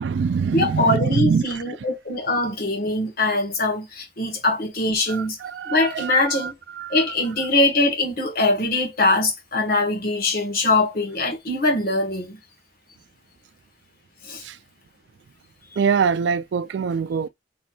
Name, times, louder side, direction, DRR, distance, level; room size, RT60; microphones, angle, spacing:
voice 1, 0.0-1.6 5.1-7.1 14.4-14.6 15.8-17.3, right 6 dB, 70° right, 0.3 m, -24 dB
voice 2, 0.5-5.4 5.7-6.5 6.9-12.4 14.2-14.4, left 2 dB, 55° left, 1.3 m, -22 dB
3.2 x 2.4 x 4.3 m
head